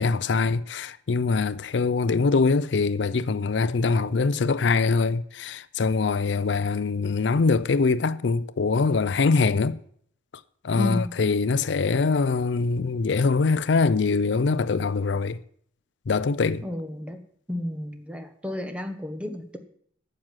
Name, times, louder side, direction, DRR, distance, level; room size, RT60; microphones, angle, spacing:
voice 1, 0.0-9.8 10.6-15.4 16.1-16.6, left 4 dB, 75° left, 0.5 m, -23 dB
voice 2, 10.7-11.1 16.6-17.2 17.5-19.6, left 1 dB, 5° right, 1.1 m, -32 dB
9.6 x 7.7 x 7.5 m
head